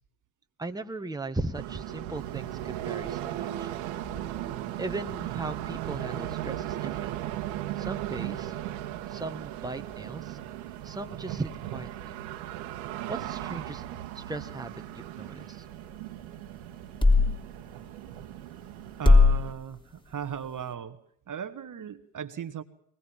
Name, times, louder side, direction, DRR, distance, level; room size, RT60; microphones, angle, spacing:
voice 1, 0.6-3.7 4.8-7.1 7.8-8.5 9.1-10.4 10.8-12.2 13.1-15.7, right 2 dB, 10° right, 6 dB, 1.8 m, -38 dB
sound 1, 1.5-19.5, right 13 dB, 75° right, 2.1 m, -37 dB
sound 2, 2.1-20.7, left 3 dB, 10° left, 3.2 m, -31 dB
voice 2, 19.0-21.0 21.3-22.6, right 8 dB, 40° right, 10 dB, 1.7 m, -37 dB
23.0 x 21.0 x 7.4 m, 0.67 s
hypercardioid pair, 70°, 50 cm